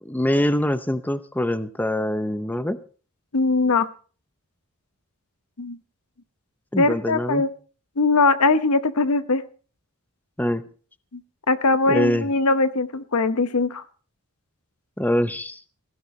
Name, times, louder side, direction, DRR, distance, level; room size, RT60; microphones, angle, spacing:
voice 1, 0.0-2.8 6.7-7.4 10.4-10.6 11.9-12.3 15.0-15.6, left 1 dB, 10° left, 12 dB, 0.6 m, -24 dB
voice 2, 3.3-3.9 5.6-5.8 6.8-7.5 8.0-9.4 11.1-11.2 11.5-13.8, left 3 dB, 85° left, 12 dB, 1.0 m, -21 dB
17.5 x 15.5 x 3.2 m, 0.39 s
head